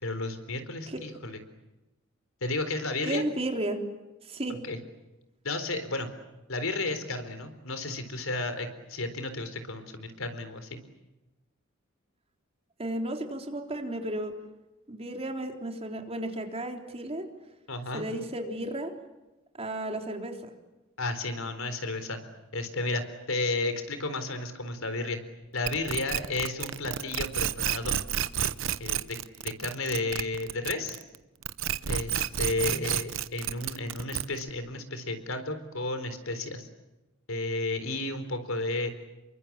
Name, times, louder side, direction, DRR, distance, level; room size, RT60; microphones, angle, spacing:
voice 1, 0.0-1.4 2.4-3.2 4.6-4.8 5.4-6.1 6.5-10.8 17.7-18.1 21.0-22.2 22.5-25.2 25.5-27.9 28.8-29.2 29.4-31.0 31.9-36.7 37.3-38.9, left 2 dB, 75° left, 9 dB, 4.0 m, -32 dB
voice 2, 3.0-3.8 4.2-4.6 12.8-14.3 14.9-17.3 17.9-18.9 19.5-20.5, right 1 dB, 30° right, 3 dB, 3.5 m, -33 dB
sound 1, 25.7-31.2 31.4-34.5, right 9 dB, 65° right, 0.9 m, -30 dB
29.0 x 23.5 x 8.7 m, 1.0 s
head